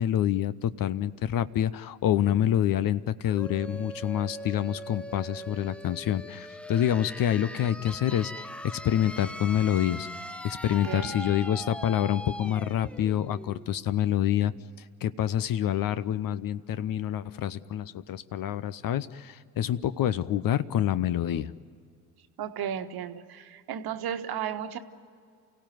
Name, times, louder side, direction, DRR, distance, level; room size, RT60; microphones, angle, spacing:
voice 1, 0.0-10.1 10.4-14.5 15.0-21.5, left 11 dB, 50° left, 16 dB, 0.8 m, -27 dB
sound 1, 3.2-14.8, equal, 5° left, 0.7 m, -41 dB
voice 2, 10.6-11.1 22.4-24.8, right 9 dB, 55° right, 8 dB, 1.4 m, -34 dB
29.0 x 16.5 x 9.3 m, 2.3 s
hypercardioid pair, 50°, 45 cm